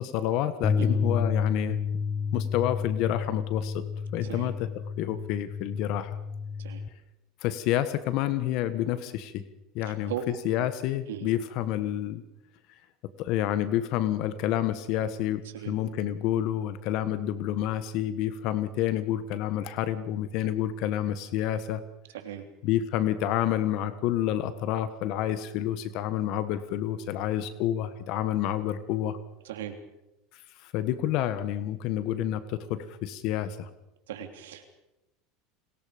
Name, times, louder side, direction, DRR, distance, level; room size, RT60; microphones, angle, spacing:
voice 1, 0.0-1.8 2.3-3.8 4.1-4.7 5.0-6.2 7.4-9.4 9.7-12.2 13.2-21.8 22.6-29.2 30.6-33.7, left 12 dB, 60° left, 12 dB, 1.5 m, -29 dB
sound 1, 0.6-6.9, left 5 dB, 30° left, 1.3 m, -30 dB
voice 2, 29.4-29.8 34.1-34.6, right 11 dB, 85° right, 6 dB, 3.3 m, -37 dB
29.5 x 21.0 x 5.3 m, 0.92 s
hypercardioid pair, 100°, 0 cm